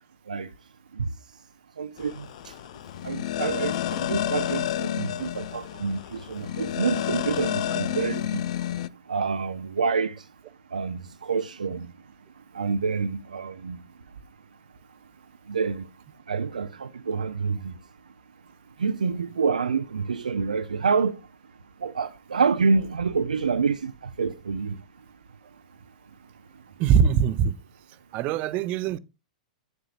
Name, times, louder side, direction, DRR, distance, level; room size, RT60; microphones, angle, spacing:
voice 1, 1.8-2.5 3.0-8.4 9.1-10.2 10.7-11.9 12.5-13.8 15.5-15.8 16.3-17.7 18.8-21.2 21.8-23.9 24.2-24.8, right 5 dB, 85° right, 0.4 m, -27 dB
sound 1, 2.0-8.9, left 12 dB, 60° left, 0.4 m, -30 dB
voice 2, 26.8-27.5 28.1-29.0, right 7 dB, 40° right, 0.6 m, -22 dB
8.7 x 7.8 x 2.4 m
hypercardioid pair, 110°, 4 cm